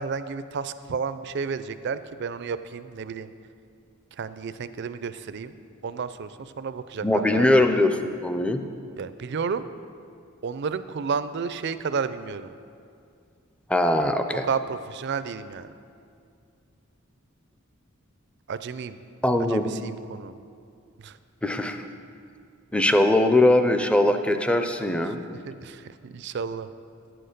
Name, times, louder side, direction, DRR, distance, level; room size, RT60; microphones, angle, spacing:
voice 1, 0.0-3.3 4.2-5.5 5.8-7.7 9.0-9.6 10.4-12.5 14.4-15.7 18.5-19.0 19.5-20.4 21.0-21.2 25.5-26.7, right 5 dB, 55° right, 13 dB, 0.4 m, -32 dB
voice 2, 7.0-8.6 13.7-14.4 19.2-19.7 21.4-21.9 22.7-25.2, left 1 dB, 5° left, 7 dB, 0.5 m, -21 dB
9.9 x 7.8 x 6.6 m, 2.4 s
head